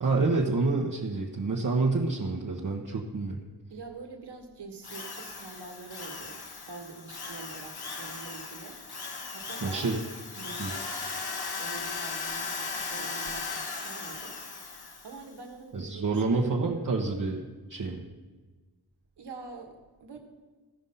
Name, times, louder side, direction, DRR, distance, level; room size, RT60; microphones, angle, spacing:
voice 1, 0.0-3.4 9.6-10.0 10.6-10.7 15.7-17.4 17.7-18.0, right 3 dB, 50° right, -2 dB, 1.3 m, -28 dB
voice 2, 3.7-8.8 9.3-10.0 10.4-11.0 11.6-14.4 15.0-16.8 19.2-20.2, right 4 dB, 75° right, 3 dB, 1.6 m, -45 dB
Drill, 4.8-15.3, left 4 dB, 65° left, 1.5 m, -37 dB
14.5 x 5.3 x 5.6 m, 1.3 s
cardioid pair, 65°, 41 cm